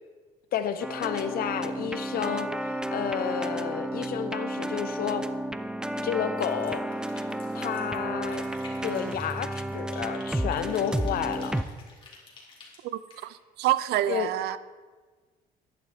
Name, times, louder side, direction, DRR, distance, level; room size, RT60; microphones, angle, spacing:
voice 1, 0.5-5.2 6.0-6.8 7.5-8.4 8.8-11.5 14.1-14.3, left 9 dB, 60° left, 0.8 m, -31 dB
sound 1, 0.8-11.6, right 1 dB, 5° right, 0.4 m, -32 dB
sound 2, 6.4-8.0 8.3-10.2 10.5-13.2, left 3 dB, 30° left, 2.7 m, -50 dB
voice 2, 12.8-14.6, right 13 dB, 75° right, 0.5 m, -28 dB
11.0 x 10.5 x 3.5 m
cardioid pair, 110°, 17 cm